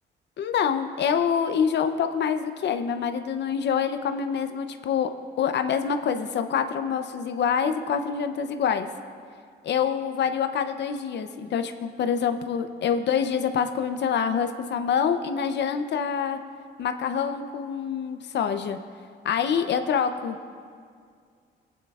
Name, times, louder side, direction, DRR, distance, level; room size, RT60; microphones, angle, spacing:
voice 1, 0.4-5.1 5.4-8.9 9.6-16.4 16.8-18.8 19.2-20.4, left 7 dB, 60° left, 8 dB, 0.6 m, -26 dB
21.5 x 9.1 x 2.4 m, 2.1 s
cardioid pair, 90°, 20 cm